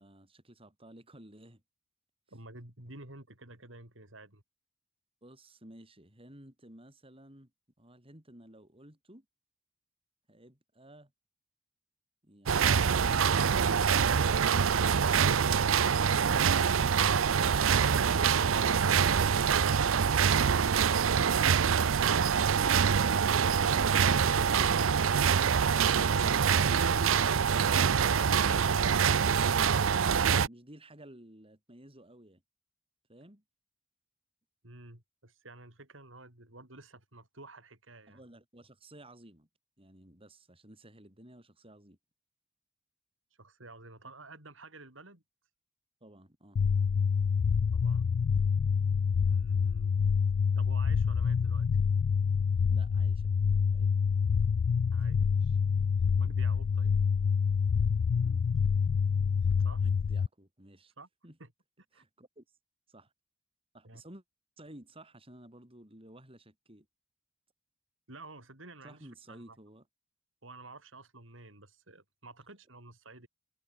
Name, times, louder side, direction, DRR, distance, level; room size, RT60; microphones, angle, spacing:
voice 1, 0.0-1.6 5.2-7.5 7.8-9.2 10.3-11.1 29.3-32.4 33.1-33.4 38.1-39.5 39.8-42.0 46.0-46.6 52.7-53.3 53.7-53.9 58.1-58.5 59.8-60.9 61.2-61.4 61.9-62.4 62.9-63.1 63.7-64.2 64.6-66.9 68.8-69.8, right 1 dB, 30° right, 6.8 m, -53 dB
voice 2, 2.3-4.4 34.6-38.2 43.4-45.2 47.7-48.1 49.2-50.0 50.6-51.7 54.9-55.6 56.2-57.0 59.6-59.9 61.0-61.1 61.4-61.5 61.9-62.0 63.8-64.0 68.1-69.6 70.4-73.3, right 2 dB, 70° right, 7.1 m, -51 dB
sound 1, 12.5-30.5, right 7 dB, 90° right, 0.6 m, -25 dB
sound 2, 46.6-60.3, left 6 dB, 55° left, 0.3 m, -27 dB
head